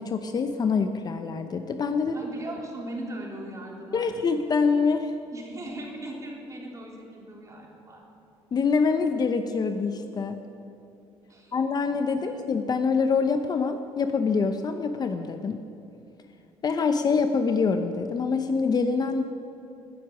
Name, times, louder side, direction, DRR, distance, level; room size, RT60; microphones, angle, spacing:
voice 1, 0.0-2.2 3.9-5.1 8.5-10.4 11.5-15.6 16.6-19.2, left 5 dB, 35° left, 8 dB, 0.8 m, -25 dB
voice 2, 2.1-4.1 5.3-8.0 11.3-11.6 12.2-12.3, right 1 dB, 30° right, -1 dB, 3.4 m, -39 dB
20.0 x 10.0 x 6.0 m, 2.6 s
cardioid pair, 110°, 11 cm